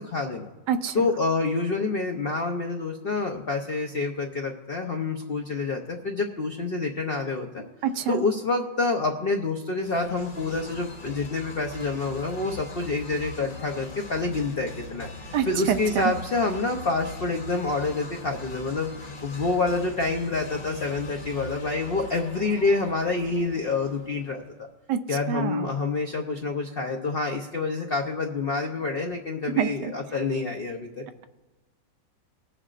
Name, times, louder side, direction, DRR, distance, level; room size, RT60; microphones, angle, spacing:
voice 1, 0.0-0.5 0.9-7.6 8.1-24.7 25.1-31.2, left 3 dB, 85° left, 3 dB, 0.5 m, -27 dB
voice 2, 0.7-1.0 7.8-8.2 15.3-16.1 24.9-25.0 25.3-25.7 29.6-29.9, right 8 dB, 75° right, 10 dB, 1.2 m, -26 dB
sound 1, 9.8-24.5, left 2 dB, 35° left, 0.9 m, -41 dB
20.5 x 6.9 x 2.5 m, 1.2 s
omnidirectional pair, 2.0 m